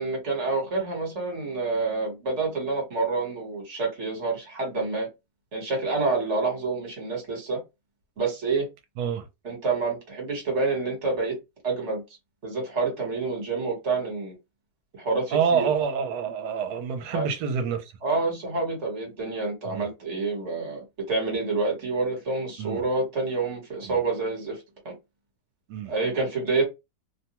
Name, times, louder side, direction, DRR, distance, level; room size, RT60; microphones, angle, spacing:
voice 1, 0.0-5.1 5.5-7.6 8.2-8.7 9.4-11.4 11.6-12.0 12.4-14.3 14.9-15.7 17.1-17.3 18.0-24.6 24.8-24.9 25.8-26.6, right 3 dB, 45° right, 1.5 m, -28 dB
voice 2, 15.3-17.9 19.7-19.9 22.6-22.8 23.9-24.0 25.7-25.9, right 6 dB, 75° right, 1.2 m, -27 dB
3.0 x 2.2 x 2.9 m
omnidirectional pair, 1.7 m